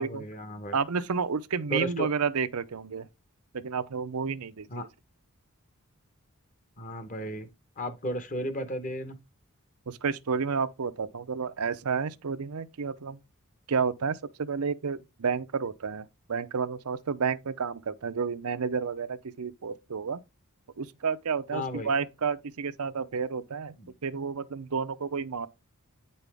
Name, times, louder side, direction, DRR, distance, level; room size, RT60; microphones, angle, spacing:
voice 1, 0.0-0.7 1.7-2.1 4.7-4.8 6.8-7.5 7.8-9.2 21.5-21.9 23.8-23.9, equal, 35° left, 1.1 m, -34 dB
voice 2, 0.7-3.1 3.5-4.9 9.9-13.2 13.7-20.2 20.8-23.7 24.0-25.5, right 5 dB, 90° right, 0.6 m, -31 dB
9.1 x 5.5 x 3.5 m
head